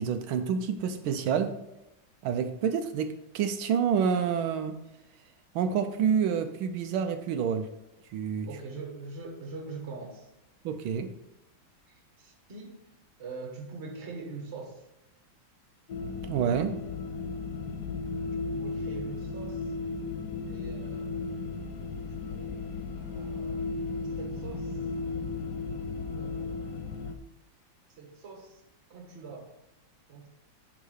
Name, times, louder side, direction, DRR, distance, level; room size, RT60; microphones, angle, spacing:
voice 1, 0.0-1.6 2.2-4.8 5.5-7.7 8.1-8.5 10.6-11.1 16.2-16.8, right 7 dB, 85° right, 8 dB, 1.4 m, -28 dB
voice 2, 8.5-10.3 11.9-12.8 13.2-14.9 18.5-19.7 20.5-21.3 22.1-22.6 22.9-23.6 24.2-24.8 26.1-26.6 27.9-28.6 28.9-29.5 30.1-30.3, right 4 dB, 35° right, 2 dB, 1.5 m, -43 dB
sound 1, 15.9-27.2, left 3 dB, 65° left, 1.0 m, -35 dB
10.5 x 3.7 x 4.9 m, 0.92 s
omnidirectional pair, 2.2 m